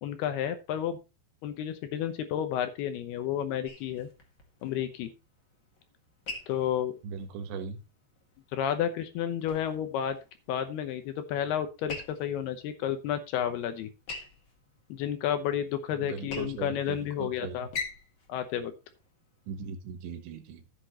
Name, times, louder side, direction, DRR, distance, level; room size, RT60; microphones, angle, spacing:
voice 1, 0.0-1.0 1.4-4.1 4.6-5.1 6.5-6.9 8.5-10.2 10.5-13.9 14.9-17.7 18.3-18.7, left 10 dB, 75° left, 9 dB, 2.8 m, -31 dB
sound 1, 3.7-19.7, left 3 dB, 50° left, 1.3 m, -46 dB
voice 2, 7.0-7.8 16.0-17.6 19.5-20.6, right 6 dB, 85° right, 8 dB, 3.6 m, -39 dB
13.0 x 8.3 x 3.0 m, 0.27 s
omnidirectional pair, 5.0 m